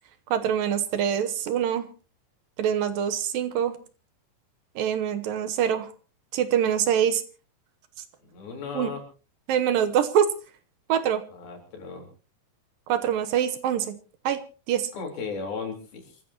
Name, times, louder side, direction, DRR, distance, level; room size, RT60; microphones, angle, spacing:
voice 1, 0.3-1.9 2.6-3.8 4.8-5.9 6.3-7.2 8.8-8.9 9.5-10.3 10.9-11.2 12.9-14.0 14.3-14.4 14.7-14.9, right 9 dB, 75° right, 9 dB, 2.5 m, -24 dB
voice 2, 8.3-9.0 11.3-12.1 14.9-16.2, left 5 dB, 70° left, 2 dB, 5.9 m, -35 dB
27.5 x 15.0 x 2.9 m, 0.37 s
omnidirectional pair, 4.4 m